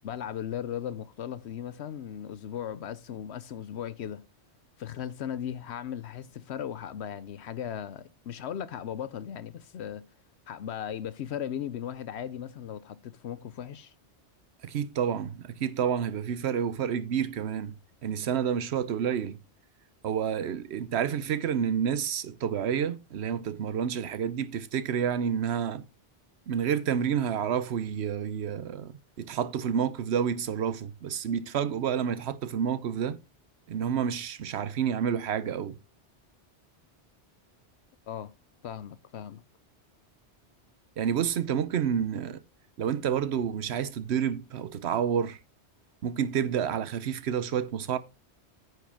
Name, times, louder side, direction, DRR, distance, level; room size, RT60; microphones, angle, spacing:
voice 1, 0.0-4.2 4.8-10.0 10.5-13.9 38.1-38.3 38.6-39.4, left 9 dB, 70° left, 0.9 m, -37 dB
voice 2, 14.6-17.7 18.0-19.4 20.0-25.8 26.5-33.2 33.7-35.8 41.0-42.4 42.8-45.4 46.0-48.0, right 8 dB, 70° right, 1.0 m, -29 dB
9.3 x 4.8 x 5.8 m
omnidirectional pair, 1.2 m